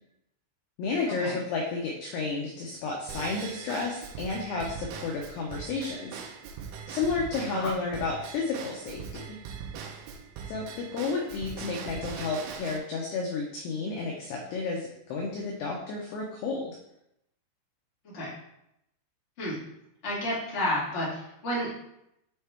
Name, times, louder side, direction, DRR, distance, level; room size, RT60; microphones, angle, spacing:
voice 1, 0.8-6.2 6.9-9.4 10.5-16.8, left 4 dB, 85° left, -1 dB, 2.3 m, -32 dB
Drum kit / Drum / Bell, 3.1-12.8, right 7 dB, 85° right, 2.8 m, -41 dB
voice 2, 18.0-18.4 19.4-19.6 20.0-21.7, left 1 dB, 30° left, -9 dB, 1.1 m, -31 dB
7.6 x 4.4 x 3.5 m, 0.81 s
omnidirectional pair, 5.8 m